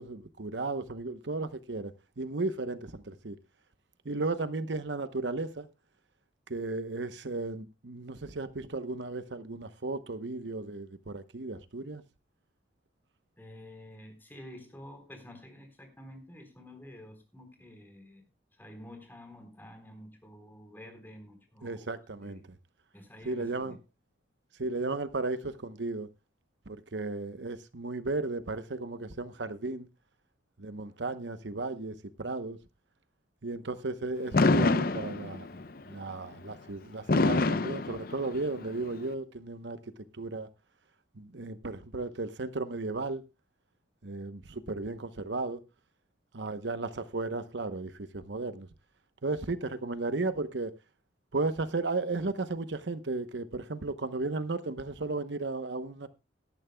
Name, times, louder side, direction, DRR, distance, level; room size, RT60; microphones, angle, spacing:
voice 1, 0.0-3.4 4.0-5.7 6.5-12.0 21.6-22.4 23.2-23.8 24.6-26.1 26.7-29.9 30.6-32.6 33.4-39.8 40.1-40.5 41.1-43.2 44.0-45.6 46.3-48.7 49.2-50.7 51.3-56.1, right 3 dB, 80° right, 0.9 m, -35 dB
voice 2, 13.4-18.2 18.6-21.9 22.2-22.4 22.9-23.8, left 1 dB, 10° left, 3.9 m, -49 dB
Fireworks, 34.3-35.6 37.1-38.6, left 3 dB, 55° left, 0.6 m, -25 dB
18.0 x 12.5 x 2.3 m
head